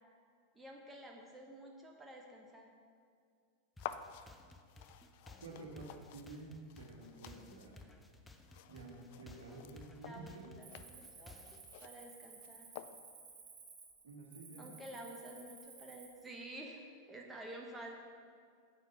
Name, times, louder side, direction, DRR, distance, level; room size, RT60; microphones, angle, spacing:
voice 1, 0.6-2.7 9.5-9.6 10.0-11.4 11.8-12.7 14.6-17.9, right 1 dB, 10° right, 1 dB, 1.1 m, -50 dB
sound 1, 3.8-13.3, left 11 dB, 50° left, 0.4 m, -52 dB
sound 2, 3.8-11.7, left 2 dB, 10° left, 0.8 m, -57 dB
voice 2, 5.4-7.9 8.7-10.5 14.0-14.8, right 3 dB, 65° right, 1 dB, 1.9 m, -51 dB
Cricket, 10.6-16.2, right 4 dB, 30° right, 3.1 m, -56 dB
9.3 x 8.2 x 5.7 m, 2.2 s
figure-of-eight pair, 90°, 0 cm